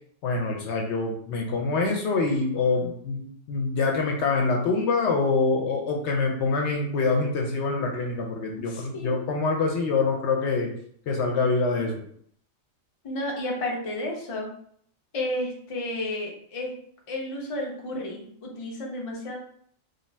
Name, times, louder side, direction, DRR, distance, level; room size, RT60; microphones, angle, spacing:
voice 1, 0.2-3.2 3.5-10.7 11.1-12.0, left 3 dB, 65° left, 1 dB, 0.8 m, -25 dB
voice 2, 8.7-9.3 13.0-14.5 15.1-16.7 17.1-19.4, left 1 dB, 45° left, -1 dB, 0.4 m, -32 dB
2.5 x 2.2 x 3.1 m, 0.64 s
omnidirectional pair, 1.3 m